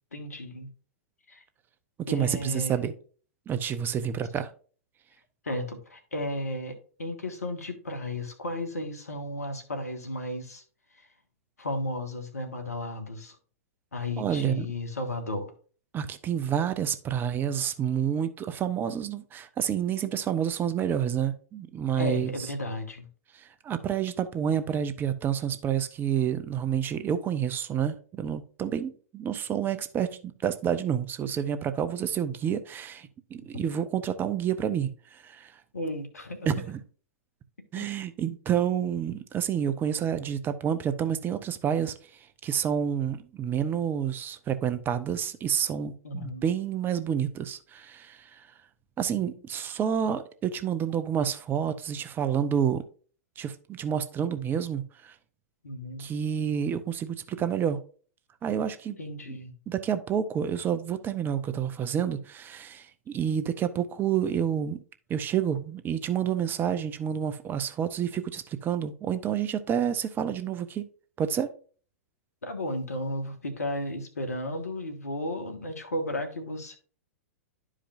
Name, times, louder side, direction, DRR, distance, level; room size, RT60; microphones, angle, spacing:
voice 1, 0.1-0.7 1.3-1.4 2.1-2.8 5.4-10.6 11.0-11.1 11.6-13.4 13.9-15.5 22.0-23.1 35.7-36.5 37.8-37.9 46.0-46.5 55.6-56.2 59.0-59.5 72.4-76.8, left 1 dB, 85° left, 6 dB, 1.6 m, -34 dB
voice 2, 2.0-2.9 3.5-4.5 14.2-14.7 15.9-22.3 23.3-35.5 36.4-36.8 37.7-41.9 42.4-48.5 49.0-52.8 53.4-55.1 56.0-57.8 58.4-59.0 59.7-64.8 65.1-70.8 71.2-71.5, right 8 dB, 25° right, 10 dB, 0.8 m, -29 dB
11.5 x 5.0 x 2.5 m, 0.40 s
hypercardioid pair, 105°, 8 cm